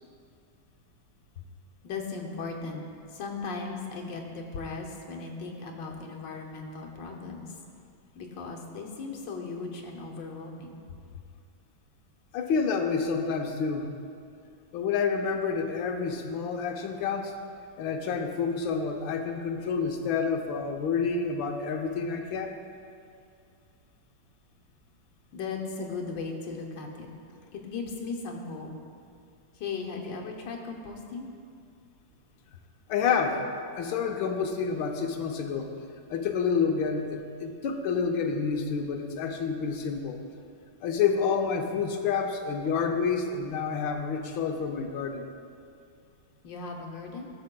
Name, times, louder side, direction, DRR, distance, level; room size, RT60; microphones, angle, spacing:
voice 1, 1.8-2.8 3.1-7.6 8.1-10.8 25.3-27.1 27.5-28.7 29.5-31.3 46.4-47.3, left 4 dB, 75° left, 1 dB, 1.5 m, -37 dB
voice 2, 12.3-13.9 14.7-17.3 17.8-22.5 32.9-33.4 33.8-35.7 36.1-40.2 40.8-45.3, left 5 dB, 90° left, 4 dB, 1.5 m, -28 dB
15.5 x 6.8 x 2.2 m, 2.4 s
omnidirectional pair, 2.1 m